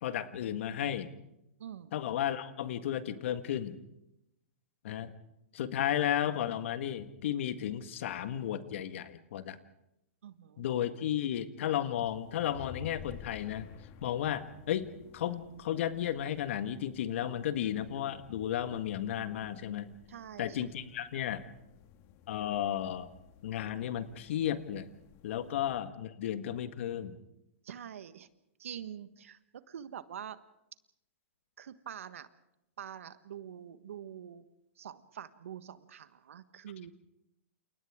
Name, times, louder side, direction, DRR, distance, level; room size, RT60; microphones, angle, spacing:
voice 1, 0.0-1.1 1.9-3.8 4.8-5.1 5.5-9.6 10.6-13.7 14.0-19.9 20.4-21.4 22.3-23.1 23.4-24.9 25.2-27.2, left 10 dB, 60° left, 10 dB, 1.7 m, -33 dB
voice 2, 1.6-1.9 10.2-10.6 20.1-20.6 25.4-25.6 27.6-28.3 28.6-30.4 31.6-32.3 32.8-34.4 34.8-36.9, right 9 dB, 70° right, 13 dB, 1.4 m, -45 dB
sound 1, 12.0-25.8, left 8 dB, 40° left, 1.7 m, -54 dB
29.5 x 28.5 x 3.7 m, 0.85 s
hypercardioid pair, 125°, 7 cm